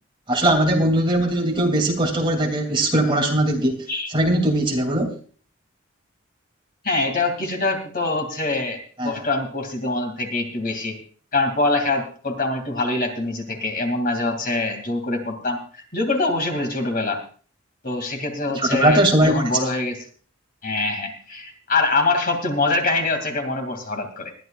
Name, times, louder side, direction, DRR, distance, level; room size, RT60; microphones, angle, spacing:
voice 1, 0.3-5.1 9.0-9.2 18.5-19.6, right 1 dB, 25° right, 2 dB, 2.7 m, -20 dB
voice 2, 6.8-11.0 11.3-17.2 17.8-20.0 20.6-24.3, left 2 dB, 45° left, 3 dB, 2.5 m, -24 dB
20.5 x 13.0 x 2.4 m, 0.42 s
head